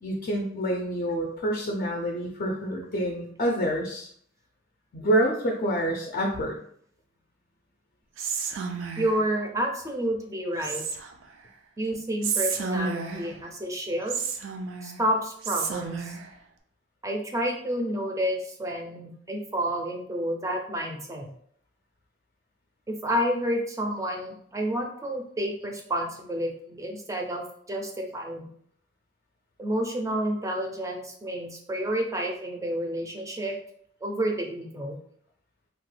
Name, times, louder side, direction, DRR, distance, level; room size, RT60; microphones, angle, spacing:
voice 1, 0.0-4.1 4.9-6.6, right 1 dB, 45° left, -1 dB, 0.4 m, -27 dB
Whispering, 8.2-9.3 10.6-11.3 12.2-13.4 14.1-15.0 15.4-16.3, right 5 dB, 80° right, 0.4 m, -31 dB
voice 2, 9.0-10.8 11.8-14.2 14.8-16.2 17.0-21.3 22.9-28.5 29.6-33.6 34.0-35.0, equal, 15° right, 2 dB, 0.4 m, -30 dB
2.9 x 2.2 x 3.1 m, 0.64 s
head